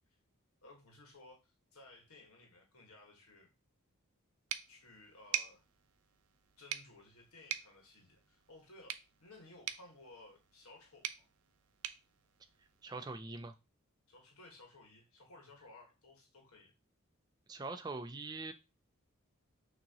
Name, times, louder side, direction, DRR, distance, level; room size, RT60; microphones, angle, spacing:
voice 1, 0.6-3.5 4.7-5.6 6.6-8.9 9.2-11.2 14.1-16.7, left 2 dB, 80° left, 1.5 m, -58 dB
sound 1, 4.5-13.2, right 11 dB, 90° right, 0.5 m, -45 dB
voice 2, 12.8-13.6 17.5-18.5, right 3 dB, 20° right, 0.3 m, -42 dB
6.2 x 2.9 x 2.9 m
head